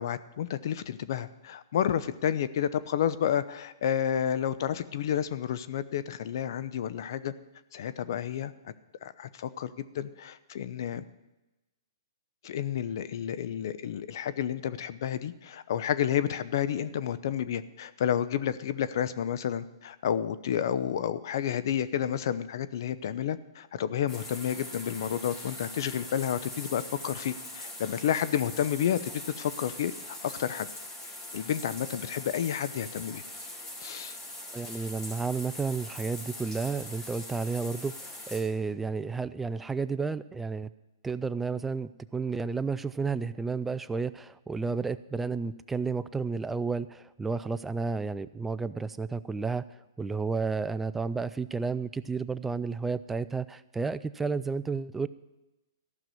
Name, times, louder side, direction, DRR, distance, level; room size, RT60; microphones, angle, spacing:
voice 1, 0.0-7.3 7.7-8.7 9.0-11.0 12.4-29.1 29.4-30.7 31.3-33.2 33.8-34.2, left 9 dB, 60° left, 14 dB, 0.7 m, -30 dB
sound 1, 24.1-38.4, left 1 dB, 20° left, 3.4 m, -42 dB
voice 2, 34.5-40.7 41.0-49.7 50.0-55.1, right 4 dB, 10° right, 14 dB, 0.4 m, -32 dB
14.5 x 6.0 x 9.3 m, 1.0 s
hypercardioid pair, 145°, 2 cm